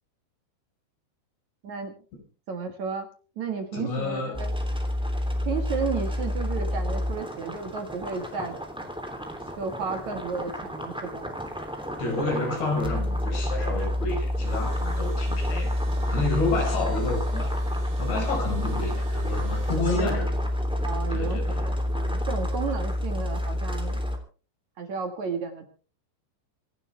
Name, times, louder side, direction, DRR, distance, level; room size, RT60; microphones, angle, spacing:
voice 1, 1.6-2.0 2.5-3.1 3.4-4.6 5.5-8.6 9.6-11.3 19.7-20.1 20.8-24.0 24.8-25.7, right 5 dB, 50° right, 5 dB, 2.7 m, -33 dB
voice 2, 3.7-4.5 12.0-15.7 16.1-17.5 18.0-20.3 21.1-21.7, left 3 dB, 70° left, 3 dB, 7.1 m, -29 dB
sound 1, 4.3-24.2, left 1 dB, ahead, 2.0 m, -29 dB
Engine / Drill, 14.2-20.4, right 6 dB, 75° right, 6.3 m, -49 dB
sound 2, 16.5-17.6 19.7-20.2, left 5 dB, 45° left, 3.0 m, -47 dB
26.5 x 11.5 x 3.5 m, 0.39 s
omnidirectional pair, 5.1 m